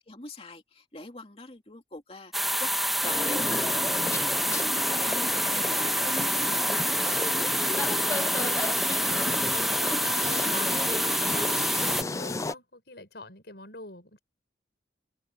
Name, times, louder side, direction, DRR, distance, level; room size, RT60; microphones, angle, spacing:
voice 1, 0.0-2.7 3.0-7.5, left 1 dB, 30° left, 2.7 m, -43 dB
sound 1, 2.3-12.0, equal, ahead, 1.1 m, -27 dB
sound 2, 3.0-12.5, left 2 dB, 15° left, 0.4 m, -33 dB
voice 2, 8.1-14.2, left 2 dB, 65° left, 5.6 m, -44 dB
head